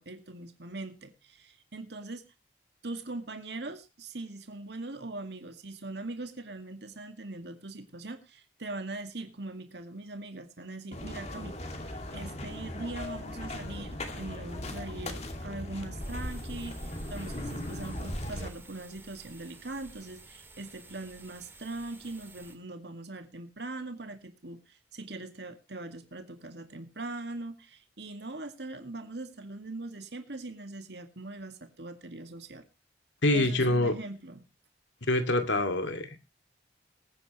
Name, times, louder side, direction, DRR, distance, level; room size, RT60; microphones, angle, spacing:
voice 1, 0.0-2.2 2.8-32.6 33.3-34.5, right 2 dB, 70° right, 7 dB, 2.0 m, -41 dB
sound 1, 10.9-18.5, left 1 dB, 35° left, 2.4 m, -39 dB
sound 2, 16.0-22.5, equal, 15° right, 2.5 m, -45 dB
voice 2, 33.2-33.9 35.1-36.2, left 2 dB, 90° left, 8 dB, 2.4 m, -25 dB
21.0 x 9.6 x 3.1 m, 0.28 s
head